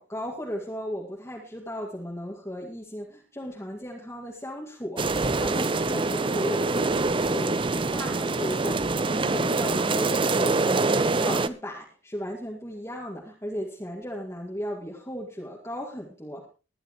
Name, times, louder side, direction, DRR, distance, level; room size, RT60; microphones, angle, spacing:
voice 1, 0.0-16.5, equal, 15° left, -2 dB, 2.0 m, -36 dB
sound 1, 5.0-11.5, right 3 dB, 25° right, 0.6 m, -25 dB
20.5 x 10.5 x 3.0 m, 0.33 s
head